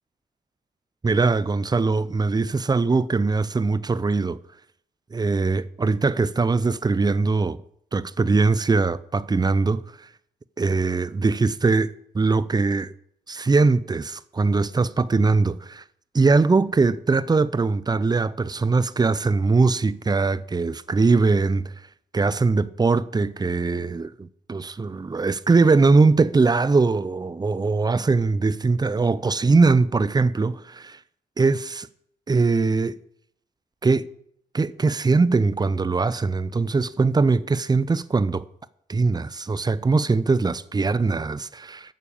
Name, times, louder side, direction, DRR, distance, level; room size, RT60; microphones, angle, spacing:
voice 1, 1.0-4.4 5.1-7.6 7.9-9.8 10.6-12.9 13.3-15.8 16.1-21.7 22.1-31.0 31.4-31.9 32.3-33.0 33.8-34.1 34.5-38.4 38.9-41.9, right 3 dB, 25° right, 0.6 m, -21 dB
9.3 x 6.8 x 8.7 m
cardioid pair, 70°, 17 cm